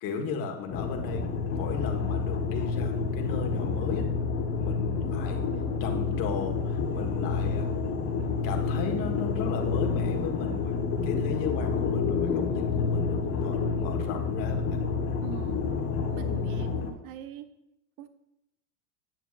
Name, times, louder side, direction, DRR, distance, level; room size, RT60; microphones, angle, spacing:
voice 1, 0.0-4.1 4.6-5.5 5.8-7.7 8.2-10.8 11.0-14.8, left 5 dB, 45° left, 3 dB, 1.6 m, -36 dB
sound 1, 0.7-16.9, left 5 dB, 30° left, 1.2 m, -29 dB
voice 2, 15.2-15.6 16.1-17.5 18.0-18.1, right 8 dB, 45° right, 9 dB, 0.8 m, -42 dB
9.3 x 9.0 x 2.5 m, 0.84 s
hypercardioid pair, 115°, 46 cm